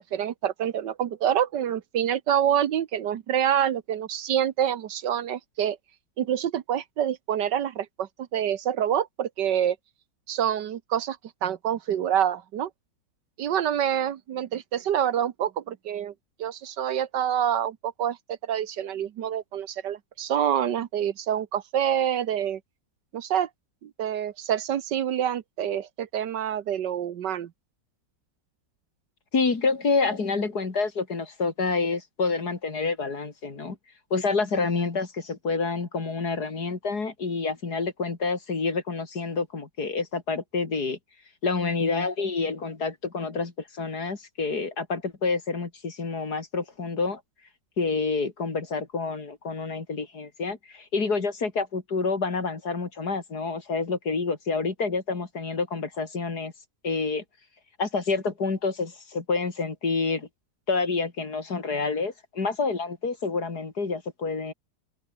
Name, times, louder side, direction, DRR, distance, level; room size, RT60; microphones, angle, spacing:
voice 1, 0.1-5.8 6.2-9.8 10.3-12.7 13.4-16.1 16.4-22.6 23.1-23.5 23.8-27.5, right 10 dB, 70° right, 1.6 m, -27 dB
voice 2, 29.3-33.8 34.1-41.0 41.4-47.2 47.8-56.5 56.8-57.2 57.8-60.3 60.7-64.5, left 4 dB, 55° left, 3.5 m, -28 dB
open air
omnidirectional pair, 2.0 m